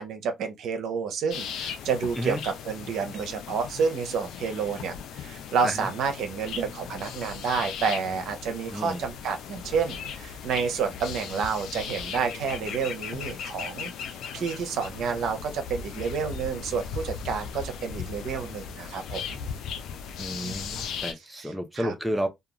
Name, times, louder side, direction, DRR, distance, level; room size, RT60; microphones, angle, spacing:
voice 1, 0.0-13.9 14.3-19.4 20.4-20.7 21.8-21.9, right 6 dB, 75° right, 0.6 m, -29 dB
sound 1, 1.3-21.1, left 7 dB, 80° left, 0.4 m, -37 dB
voice 2, 8.7-9.0 20.2-22.3, equal, 10° right, 0.6 m, -31 dB
2.3 x 2.3 x 2.9 m
supercardioid pair, 70°, 0 cm